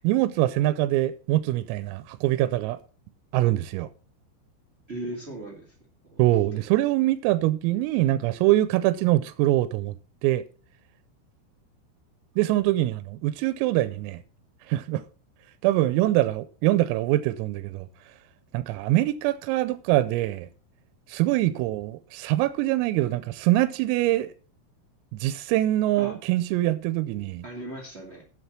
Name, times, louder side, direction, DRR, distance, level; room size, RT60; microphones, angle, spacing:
voice 1, 0.0-2.8 3.3-3.9 6.2-10.0 10.2-10.4 12.4-14.2 14.7-15.0 15.6-17.9 18.5-20.5 21.1-24.3 25.1-27.4, right 16 dB, 90° right, 3.4 m, -24 dB
voice 2, 4.9-5.7 6.0-6.2 21.5-21.6 26.0-26.1 27.4-28.2, right 1 dB, 70° right, 0.6 m, -37 dB
8.0 x 8.0 x 7.2 m
omnidirectional pair, 5.9 m